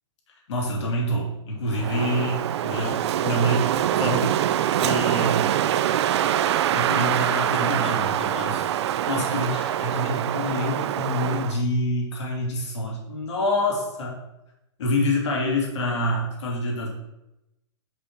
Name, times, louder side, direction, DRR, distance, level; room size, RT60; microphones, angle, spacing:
voice 1, 0.5-4.4 4.7-5.6 6.7-8.7 9.0-14.2 14.8-16.9, left 1 dB, 70° left, -1 dB, 2.5 m, -27 dB
Wind, 1.7-11.6, right 11 dB, 65° right, 0.4 m, -24 dB
5.3 x 5.2 x 4.8 m, 0.91 s
hypercardioid pair, 130°, 15 cm